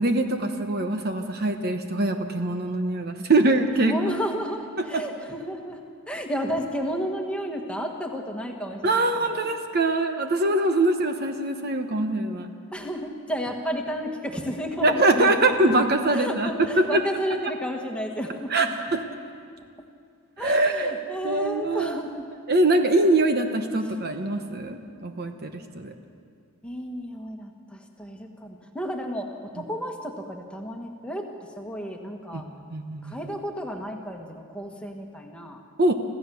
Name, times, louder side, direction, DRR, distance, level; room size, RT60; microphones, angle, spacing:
voice 1, 0.0-3.9 4.8-5.0 8.8-12.5 14.8-17.0 18.5-19.0 20.4-20.9 21.2-21.9 22.5-25.9 32.3-32.4 32.7-33.2 35.8-35.9, right 2 dB, 45° right, 6 dB, 1.0 m, -23 dB
voice 2, 3.8-5.8 6.1-9.4 12.7-15.5 15.7-18.7 20.4-22.3 26.6-31.3 31.6-32.5 33.0-35.6, equal, 5° left, 2 dB, 1.5 m, -32 dB
26.0 x 15.5 x 7.0 m, 2.3 s
head